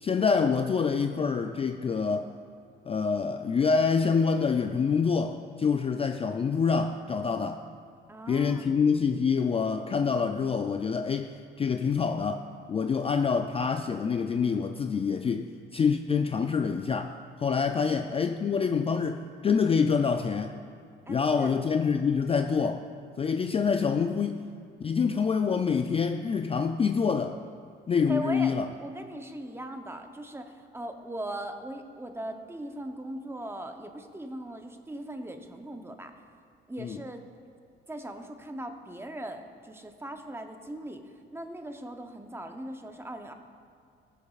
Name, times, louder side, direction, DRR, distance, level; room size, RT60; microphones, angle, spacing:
voice 1, 0.0-2.3 2.9-7.6 8.3-12.4 12.7-20.6 21.1-22.8 23.2-24.4 24.8-27.4 27.9-28.6 36.8-37.0, left 5 dB, 30° left, 6 dB, 0.4 m, -26 dB
voice 2, 8.1-8.7 17.7-18.2 21.1-21.6 28.1-36.1 36.7-37.2 37.9-43.3, right 1 dB, 10° right, 5 dB, 0.8 m, -39 dB
19.0 x 6.7 x 2.4 m, 2.3 s
cardioid pair, 90°, 20 cm